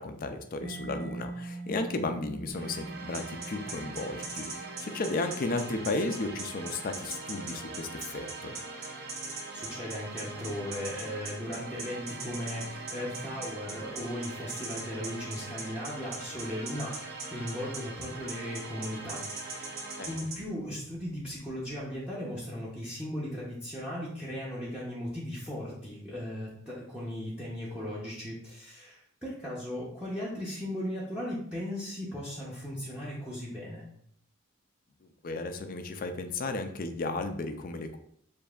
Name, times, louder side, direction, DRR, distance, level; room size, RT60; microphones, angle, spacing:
voice 1, 0.0-8.5 20.0-20.2 35.0-38.0, left 2 dB, 40° left, 7 dB, 0.4 m, -34 dB
Mallet percussion, 0.6-8.1, right 3 dB, 85° right, 1.0 m, -45 dB
sound 1, 2.5-20.4, right 3 dB, 45° right, 0.6 m, -43 dB
sound 2, 3.1-20.4, right 3 dB, 65° right, 1.3 m, -40 dB
voice 2, 9.5-33.9, left 1 dB, 5° right, -8 dB, 0.7 m, -37 dB
6.8 x 2.6 x 2.4 m, 0.67 s
head